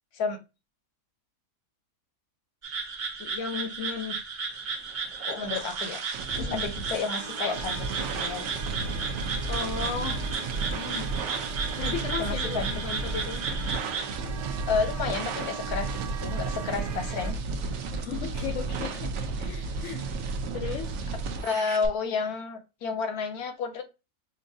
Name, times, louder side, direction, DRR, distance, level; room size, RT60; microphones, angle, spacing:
sound 1, 2.6-14.2, right 5 dB, 45° right, 1.1 m, -34 dB
voice 1, 3.2-4.2 6.4-6.7 9.5-10.2 10.7-11.1 11.8-13.5 17.9-19.1 19.4-20.0 20.5-20.9, left 6 dB, 65° left, 4 dB, 0.9 m, -35 dB
sound 2, 4.9-21.9, right 4 dB, 65° right, 0.8 m, -33 dB
voice 2, 5.3-6.0 6.4-8.5 12.2-12.7 14.7-15.9 16.2-17.4 21.4-23.8, left 5 dB, 90° left, 7 dB, 1.3 m, -31 dB
sound 3, 7.2-17.3, right 5 dB, 90° right, 1.2 m, -41 dB
5.3 x 2.6 x 2.6 m, 0.27 s
omnidirectional pair, 1.5 m